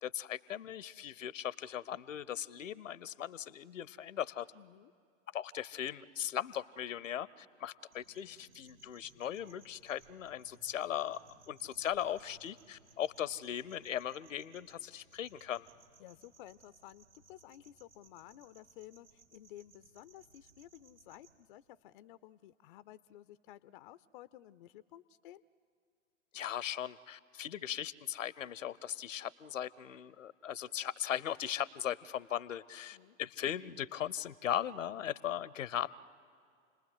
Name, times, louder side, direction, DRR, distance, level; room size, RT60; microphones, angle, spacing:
voice 1, 0.0-4.5 5.3-11.2 11.5-15.7 26.3-35.9, left 10 dB, 70° left, 21 dB, 0.8 m, -38 dB
voice 2, 4.5-4.9 16.0-25.4 32.9-33.2, left 13 dB, 40° left, 16 dB, 0.5 m, -54 dB
sound 1, 7.9-21.4, right 4 dB, 80° right, 2.9 m, -64 dB
29.0 x 20.0 x 8.0 m, 2.3 s
figure-of-eight pair, 105°, 40 cm